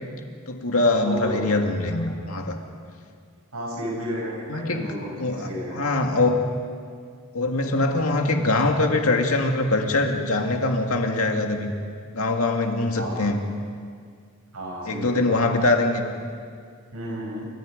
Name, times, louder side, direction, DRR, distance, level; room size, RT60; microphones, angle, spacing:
voice 1, 0.5-2.6 4.5-4.9 5.2-5.5 5.8-6.4 7.3-11.7 12.1-13.5 14.9-16.1, left 2 dB, 80° left, 3 dB, 2.2 m, -23 dB
voice 2, 1.0-2.0 3.5-5.9 12.9-13.3 14.5-15.4 16.9-17.5, equal, 85° right, -2 dB, 6.7 m, -33 dB
30.0 x 25.5 x 5.2 m, 2.1 s
head